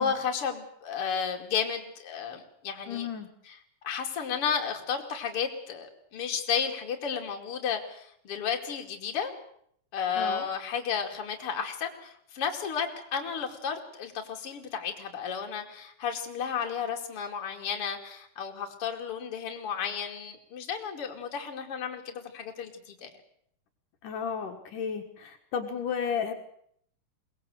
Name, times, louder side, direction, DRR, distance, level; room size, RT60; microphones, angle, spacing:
voice 1, 0.0-3.1 3.5-3.6 3.8-9.3 9.9-23.1, left 7 dB, 45° left, 2 dB, 3.1 m, -33 dB
voice 2, 2.9-3.3 10.2-10.4 24.0-26.3, left 7 dB, 70° left, 4 dB, 3.1 m, -33 dB
22.5 x 19.5 x 7.9 m, 0.68 s
omnidirectional pair, 3.8 m